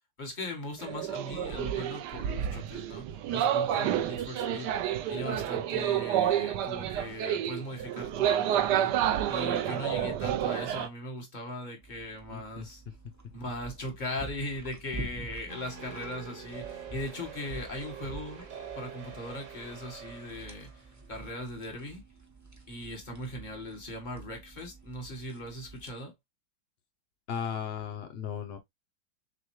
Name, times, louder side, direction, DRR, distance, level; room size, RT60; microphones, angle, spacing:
voice 1, 0.2-12.8 13.3-18.4 18.7-22.0 22.7-26.1, left 1 dB, 30° left, 1.3 m, -39 dB
sound 1, 0.8-10.9, right 10 dB, 75° right, 1.1 m, -29 dB
sound 2, 11.8-25.9, right 3 dB, 25° right, 0.3 m, -47 dB
voice 2, 12.3-12.7 27.3-28.6, left 8 dB, 85° left, 0.5 m, -36 dB
sound 3, 15.5-20.8, right 7 dB, 50° right, 1.4 m, -45 dB
6.6 x 2.2 x 3.0 m
omnidirectional pair, 2.0 m